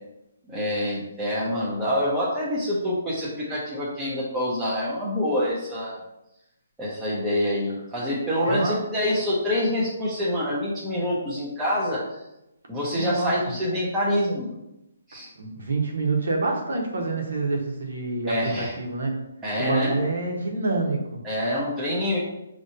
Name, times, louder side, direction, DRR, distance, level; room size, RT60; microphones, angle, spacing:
voice 1, 0.5-6.0 6.8-12.0 12.7-14.5 15.1-15.3 18.3-18.7 19.4-19.9 21.2-22.2, left 1 dB, 5° right, -9 dB, 0.7 m, -26 dB
voice 2, 8.4-8.8 12.9-13.3 15.4-19.2 19.6-21.2, right 3 dB, 75° right, 1 dB, 1.1 m, -27 dB
5.4 x 3.0 x 2.7 m, 0.88 s
hypercardioid pair, 165°, 0 cm